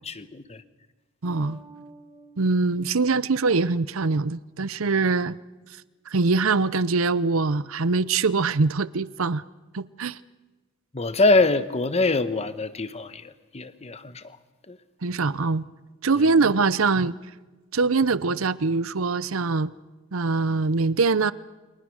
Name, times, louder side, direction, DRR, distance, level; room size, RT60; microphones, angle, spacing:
voice 1, 0.0-0.6 10.9-14.2 14.7-14.8 16.1-16.3, left 2 dB, 30° left, 1.2 m, -24 dB
Bass guitar, 1.2-4.3, right 2 dB, 20° right, 2.2 m, -51 dB
voice 2, 1.2-1.6 2.4-5.4 6.1-9.4 9.7-10.2 15.0-15.7 16.0-17.2 17.7-19.7 20.1-21.3, right 4 dB, 75° right, 0.7 m, -23 dB
29.0 x 24.0 x 6.4 m
head